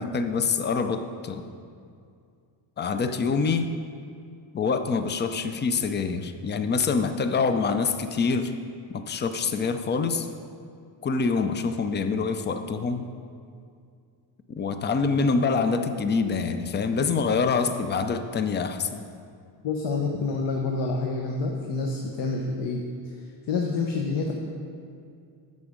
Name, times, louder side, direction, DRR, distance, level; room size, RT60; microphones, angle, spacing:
voice 1, 0.0-1.4 2.8-3.7 4.5-8.5 8.9-10.3 11.0-13.1 14.6-19.0, left 5 dB, 25° left, 9 dB, 0.4 m, -25 dB
voice 2, 19.6-22.8 23.2-24.3, left 4 dB, 65° left, 0 dB, 1.1 m, -28 dB
10.5 x 7.3 x 5.1 m, 2.3 s
cardioid pair, 145°, 46 cm